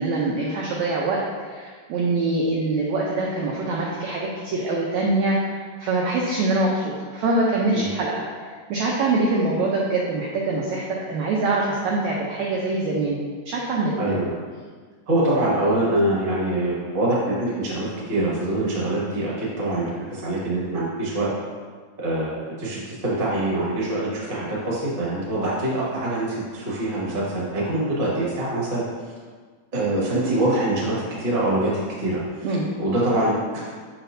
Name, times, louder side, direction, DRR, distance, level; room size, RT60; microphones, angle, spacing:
voice 1, 0.0-13.2 13.4-14.1 32.4-32.7, right 2 dB, 85° right, -3 dB, 1.6 m, -24 dB
voice 2, 13.9-14.3 15.1-21.3 22.0-28.8 29.7-31.7 32.0-32.5 32.8-33.7, right 1 dB, 35° right, -7 dB, 0.8 m, -24 dB
6.6 x 6.1 x 2.7 m, 1.5 s
omnidirectional pair, 4.0 m